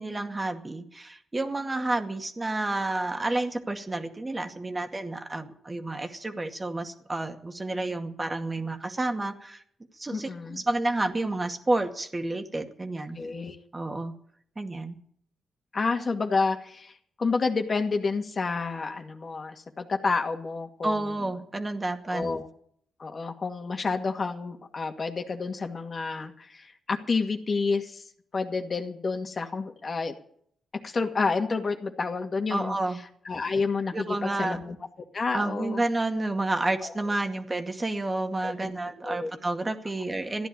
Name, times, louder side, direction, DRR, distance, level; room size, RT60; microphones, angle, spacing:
voice 1, 0.0-9.6 10.0-13.2 13.7-14.1 14.6-15.0 20.8-22.3 32.5-33.0 33.9-34.6 35.3-40.5, right 2 dB, 30° right, 6 dB, 2.1 m, -30 dB
voice 2, 10.1-10.6 13.1-13.6 15.7-16.9 17.2-21.0 22.0-22.5 23.0-28.0 28.3-30.1 30.8-32.8 33.3-34.8 35.1-35.8 36.8-37.0 38.4-39.3, left 4 dB, 50° left, 5 dB, 2.1 m, -29 dB
14.5 x 10.5 x 8.6 m, 0.64 s
supercardioid pair, 55°, 0 cm